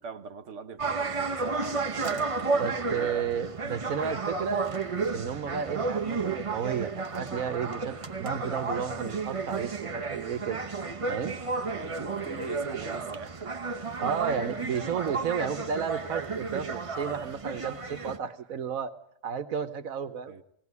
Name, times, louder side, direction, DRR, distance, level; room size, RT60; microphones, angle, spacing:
voice 1, 0.0-4.4 11.7-15.3 18.0-18.2 20.3-20.4, right 5 dB, 60° right, 1.3 m, -42 dB
sound 1, 0.8-18.2, right 4 dB, 25° right, 0.9 m, -32 dB
voice 2, 2.6-4.6 5.1-10.6 11.1-11.4 14.0-18.9 19.2-20.3, right 7 dB, 80° right, 1.5 m, -32 dB
19.0 x 18.0 x 9.6 m
omnidirectional pair, 1.4 m